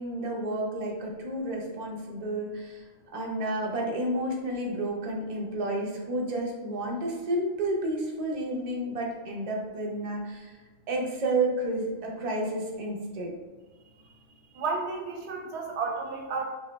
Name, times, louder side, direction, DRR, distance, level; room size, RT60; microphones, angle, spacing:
voice 1, 0.0-2.8 3.1-10.5 10.9-13.3, right 1 dB, 45° right, -1 dB, 0.5 m, -31 dB
voice 2, 14.5-16.4, right 4 dB, 75° right, 1 dB, 0.8 m, -32 dB
2.9 x 2.2 x 3.1 m, 1.3 s
omnidirectional pair, 1.2 m